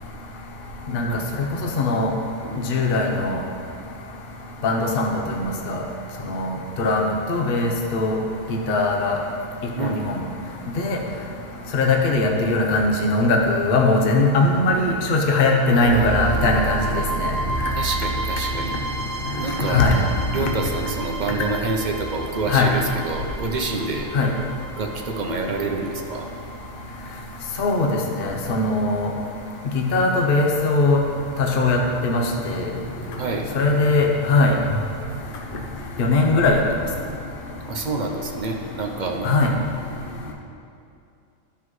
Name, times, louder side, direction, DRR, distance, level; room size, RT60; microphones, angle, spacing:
voice 1, 1.8-2.1 2.6-3.4 4.6-5.8 6.3-8.2 8.5-9.2 9.8-10.2 10.8-11.0 11.7-16.8 17.2-17.3 19.7-19.9 20.4-20.5 22.5-22.7 24.1-24.3 27.6-27.9 28.2-29.1 29.7-31.0 31.4-32.7 33.5-34.5 36.0-36.6 39.2-39.5, left 3 dB, 45° left, 1 dB, 0.9 m, -20 dB
voice 2, 15.7-16.1 17.7-18.8 19.3-19.8 20.3-24.1 24.8-26.3 33.2-33.5 37.7-39.4, right 3 dB, 45° right, 2 dB, 0.6 m, -27 dB
sound 1, 15.7-29.7, right 2 dB, 80° right, 1.2 m, -31 dB
12.0 x 5.7 x 3.1 m, 2.6 s
omnidirectional pair, 1.5 m